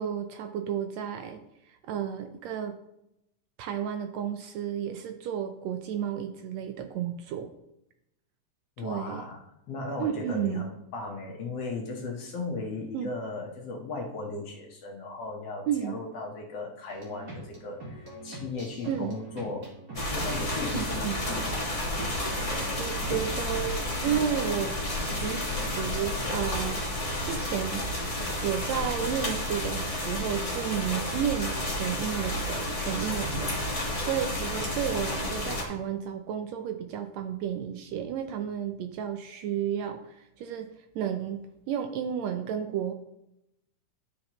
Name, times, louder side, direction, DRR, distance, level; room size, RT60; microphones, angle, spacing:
voice 1, 0.0-2.8 3.6-7.5 8.8-9.2 10.0-10.6 12.9-13.1 15.7-16.0 18.9-19.1 20.7-21.2 22.8-26.8 27.2-27.8 28.4-33.5 34.0-40.7 40.9-42.9, right 9 dB, 80° right, 7 dB, 1.6 m, -32 dB
voice 2, 8.8-9.4 9.7-19.7 20.1-21.7 33.2-33.4, left 3 dB, 60° left, 0 dB, 1.9 m, -36 dB
sound 1, 16.9-26.6, right 2 dB, 35° right, 1.9 m, -43 dB
sound 2, 19.9-35.6, left 1 dB, 25° left, 0.7 m, -31 dB
11.5 x 6.4 x 3.0 m, 0.83 s
omnidirectional pair, 3.5 m